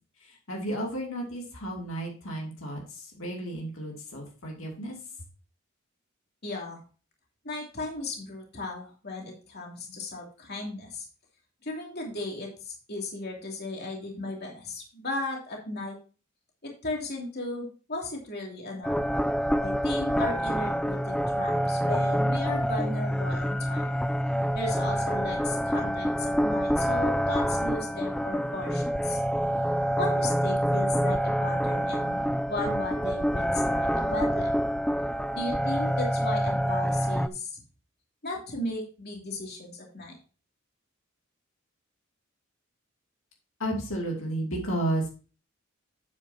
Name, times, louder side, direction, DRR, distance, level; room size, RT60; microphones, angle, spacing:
voice 1, 0.2-5.0 43.6-45.1, right 1 dB, 75° left, 0 dB, 2.6 m, -32 dB
voice 2, 6.4-6.8 7.4-11.1 11.6-16.0 16.6-19.0 19.6-23.9 24.5-29.2 30.0-32.2 32.5-34.6 35.3-37.5 38.2-40.2, left 2 dB, 50° left, 0 dB, 2.8 m, -36 dB
sound 1, 18.8-37.3, equal, 5° left, 0.3 m, -27 dB
9.3 x 8.4 x 2.8 m, 0.36 s
head